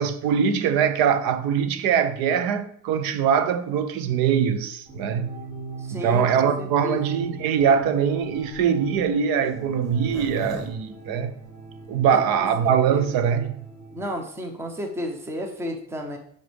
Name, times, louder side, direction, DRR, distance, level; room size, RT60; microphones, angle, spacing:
voice 1, 0.0-5.3 5.9-11.3 11.9-13.6, right 7 dB, 75° right, 0.8 m, -22 dB
sound 1, 4.9-14.0, right 3 dB, 45° right, 2.6 m, -39 dB
voice 2, 5.8-7.0 12.1-13.0 13.9-16.2, equal, 5° right, 0.6 m, -33 dB
Zipper (clothing), 7.6-11.9 12.4-12.5 12.6-12.7 12.9-13.3, left 2 dB, 10° left, 1.1 m, -42 dB
8.8 x 5.3 x 3.4 m
cardioid pair, 180°, 35 cm